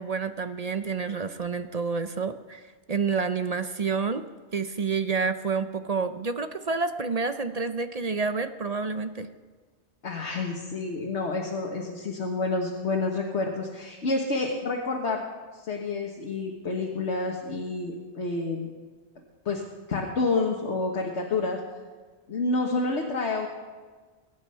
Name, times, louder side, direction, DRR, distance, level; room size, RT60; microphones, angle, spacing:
voice 1, 0.0-2.6 2.9-4.2 4.5-9.3, right 4 dB, 45° right, 9 dB, 0.6 m, -29 dB
voice 2, 10.0-15.2 15.6-18.7 19.5-19.6 19.9-21.6 22.3-23.5, left 3 dB, 80° left, 0 dB, 1.7 m, -29 dB
22.0 x 9.6 x 5.6 m, 1.4 s
omnidirectional pair, 1.2 m